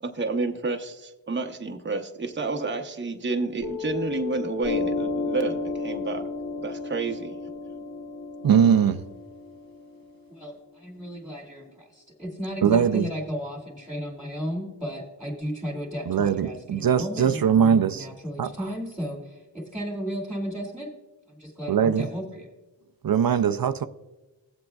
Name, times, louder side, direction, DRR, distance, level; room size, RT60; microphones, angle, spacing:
voice 1, 0.0-6.3 6.6-7.4, right 3 dB, 25° right, 0.8 m, -30 dB
Piano, 3.6-10.7, left 4 dB, 80° left, 1.2 m, -32 dB
voice 2, 8.4-9.1 12.6-13.1 16.1-18.1 18.4-18.5 21.7-22.1 23.0-23.9, right 8 dB, 50° right, 0.4 m, -21 dB
voice 3, 10.3-20.9 21.3-22.5, equal, ahead, 2.1 m, -34 dB
16.5 x 7.7 x 2.3 m
cardioid pair, 50°, 46 cm